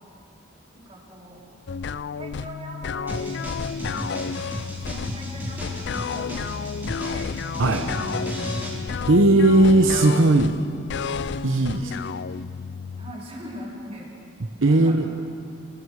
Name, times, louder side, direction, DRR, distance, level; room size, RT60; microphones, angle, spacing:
voice 1, 0.7-1.4 2.1-3.4 3.9-4.2 4.6-7.3 7.9-8.7 11.7-12.1 13.0-14.1 14.7-15.1, equal, 30° right, -4 dB, 4.4 m, -41 dB
sound 1, 1.7-13.1, left 5 dB, 60° left, 0.4 m, -31 dB
sound 2, 3.1-8.8, right 1 dB, 10° right, 3.6 m, -35 dB
voice 2, 7.6-7.9 9.1-10.6 11.4-11.9 14.6-15.1, right 2 dB, 80° right, 5 dB, 0.9 m, -17 dB
26.5 x 20.5 x 4.9 m, 2.6 s
head